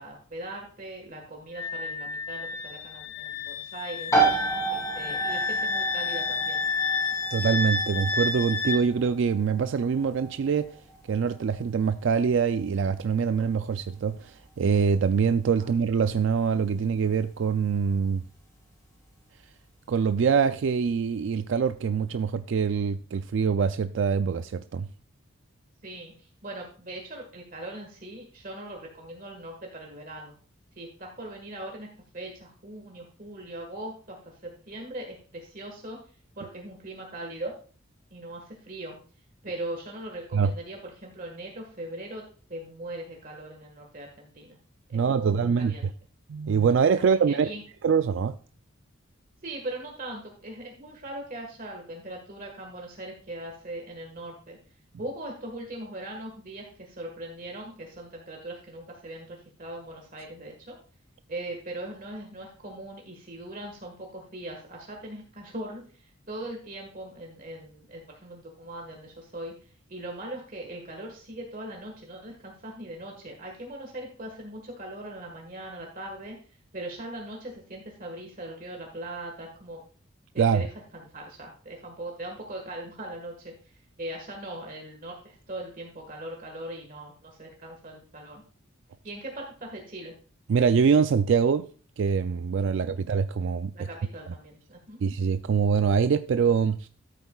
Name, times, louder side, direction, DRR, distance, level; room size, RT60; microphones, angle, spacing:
voice 1, 0.0-4.2 4.7-6.6 15.5-15.7 25.8-30.3 30.7-31.9 32.1-36.0 36.4-37.5 38.1-39.0 39.4-42.2 42.5-44.6 44.9-45.9 46.9-47.6 49.4-54.6 55.0-60.8 61.3-76.4 76.7-79.8 80.3-80.7 80.9-88.4 89.0-90.1 92.7-93.0 93.7-95.0, right 1 dB, 40° right, 1.6 m, -40 dB
Wind instrument woodwind instrument, 1.6-8.8, left 4 dB, 85° left, 0.9 m, -30 dB
sound 1, 4.1-18.6, right 3 dB, 15° left, 4.1 m, -33 dB
voice 2, 7.3-10.7 11.1-18.2 19.9-24.9 40.3-40.5 44.9-45.7 46.3-47.5 47.8-48.4 80.4-80.7 90.5-91.7 92.0-93.7 95.0-96.9, right 6 dB, 65° right, 0.3 m, -24 dB
13.5 x 8.2 x 2.3 m
head